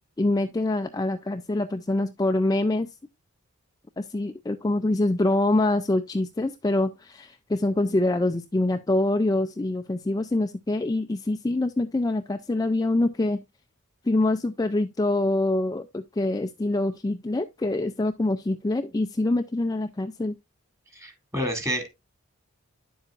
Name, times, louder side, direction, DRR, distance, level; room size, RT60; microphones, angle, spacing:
voice 1, 0.0-2.9 4.0-13.4 14.0-20.4, left 2 dB, 15° left, 0.4 m, -25 dB
voice 2, 20.9-21.9, equal, 15° right, 2.3 m, -29 dB
10.0 x 7.4 x 2.4 m
head